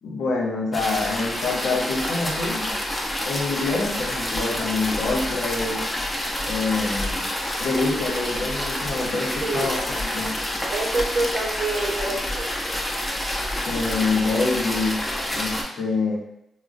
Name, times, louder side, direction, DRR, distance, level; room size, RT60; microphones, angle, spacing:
voice 1, 0.0-2.8 3.2-5.9 6.5-7.3 7.6-10.4 13.7-16.2, left 3 dB, 80° left, -2 dB, 0.7 m, -26 dB
sound 1, 0.7-15.6, left 1 dB, 20° left, 0.7 m, -28 dB
voice 2, 9.4-9.8 10.7-12.8, right 2 dB, 70° right, -1 dB, 0.7 m, -27 dB
3.6 x 2.1 x 2.5 m, 0.80 s
supercardioid pair, 55°, 0 cm